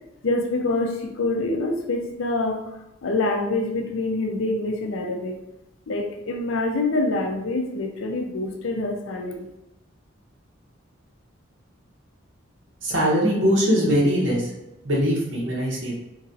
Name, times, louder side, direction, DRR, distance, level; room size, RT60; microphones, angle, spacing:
voice 1, 0.2-2.6 3.0-5.3 5.9-9.5, left 2 dB, 85° left, 3 dB, 0.5 m, -26 dB
voice 2, 12.8-14.5 14.8-15.9, equal, 65° right, -4 dB, 1.0 m, -21 dB
2.9 x 2.7 x 2.6 m, 0.93 s
head